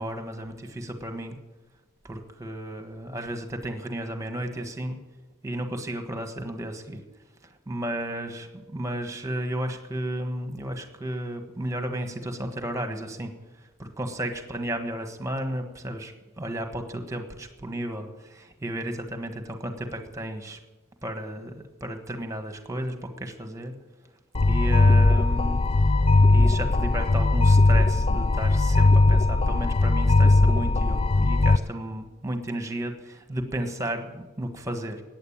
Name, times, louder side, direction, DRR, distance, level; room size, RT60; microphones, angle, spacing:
voice 1, 0.0-1.4 2.0-5.0 5.4-7.0 7.7-13.3 13.8-20.6 21.0-23.7 24.5-25.6 26.3-35.0, right 1 dB, 15° right, 6 dB, 1.4 m, -33 dB
sound 1, 24.3-31.6, left 2 dB, 25° left, 0.4 m, -19 dB
14.5 x 9.5 x 8.7 m, 1.2 s
head